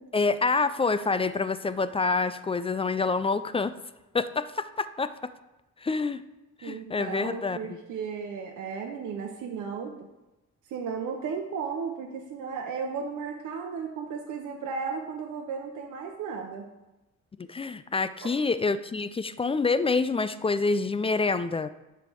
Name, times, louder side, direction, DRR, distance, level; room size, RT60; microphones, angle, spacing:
voice 1, 0.1-3.7 4.1-5.1 5.8-6.2 6.6-7.6 17.5-21.7, left 4 dB, 20° left, 13 dB, 0.3 m, -27 dB
voice 2, 6.6-9.9 10.7-16.7 18.2-18.3, right 5 dB, 75° right, 2 dB, 0.9 m, -35 dB
10.5 x 3.5 x 6.1 m, 1.0 s
cardioid pair, 90°, 30 cm